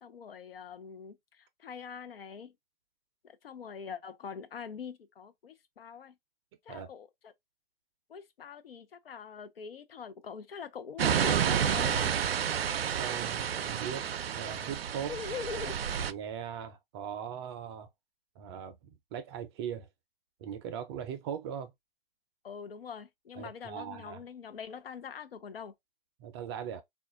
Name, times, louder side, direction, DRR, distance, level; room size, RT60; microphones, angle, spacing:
voice 1, 0.0-2.5 3.2-6.1 6.6-7.3 8.1-12.1 15.1-15.8 22.4-25.7, left 6 dB, 75° left, 0.8 m, -43 dB
sound 1, 11.0-16.1, right 8 dB, 80° right, 0.5 m, -30 dB
voice 2, 13.0-15.1 16.0-17.9 18.4-18.8 19.1-19.9 20.4-21.7 23.4-24.2 26.2-26.8, right 8 dB, 25° right, 0.5 m, -39 dB
3.6 x 2.4 x 2.4 m
hypercardioid pair, 125°, 30 cm